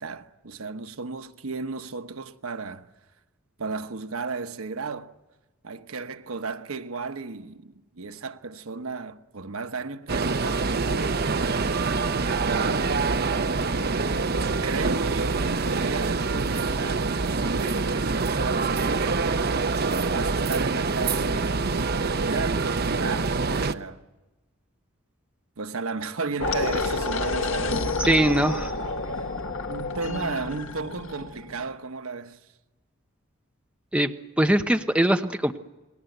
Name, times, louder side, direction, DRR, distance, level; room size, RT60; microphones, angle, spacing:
voice 1, 0.0-2.9 3.6-5.1 5.6-11.2 12.5-13.6 14.6-19.2 19.7-24.0 25.6-28.2 29.2-29.3 29.7-32.4, right 4 dB, 90° right, 1.1 m, -34 dB
sound 1, 10.1-23.7, right 4 dB, 50° right, 0.8 m, -25 dB
sound 2, 26.4-31.5, left 3 dB, 65° left, 2.0 m, -29 dB
voice 2, 28.0-28.7 33.9-34.1 34.4-35.6, right 1 dB, 5° right, 0.9 m, -21 dB
29.0 x 20.5 x 8.0 m
head